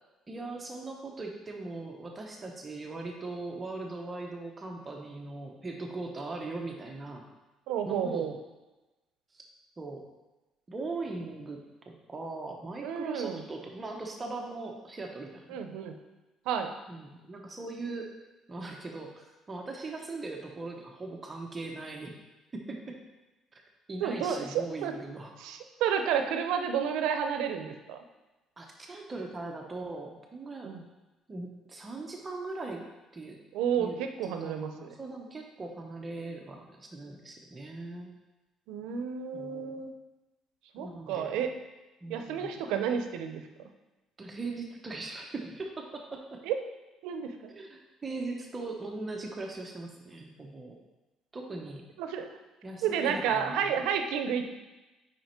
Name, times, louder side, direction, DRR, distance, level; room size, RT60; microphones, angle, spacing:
voice 1, 0.3-7.3 7.8-8.3 9.3-9.5 9.8-10.0 10.7-15.6 16.9-18.1 18.5-22.2 22.5-23.0 23.5-23.6 23.9-25.5 28.6-30.7 31.3-32.8 33.1-33.4 33.8-34.0 34.2-38.1 39.3-39.8 40.8-41.5 42.0-42.6 44.2-46.4 47.5-50.8 51.3-51.9 52.6-53.7, right 3 dB, 20° right, 1 dB, 0.7 m, -40 dB
voice 2, 7.7-8.3 12.8-13.4 15.5-16.0 16.5-16.7 24.0-24.9 25.4-28.0 30.6-30.8 33.5-34.9 38.7-39.9 40.7-41.5 42.1-43.4 46.4-46.6 47.0-47.5 52.0-52.3 52.8-54.4, right 7 dB, 90° right, 6 dB, 0.6 m, -31 dB
5.8 x 5.0 x 4.4 m, 1.1 s
cardioid pair, 130°, 0 cm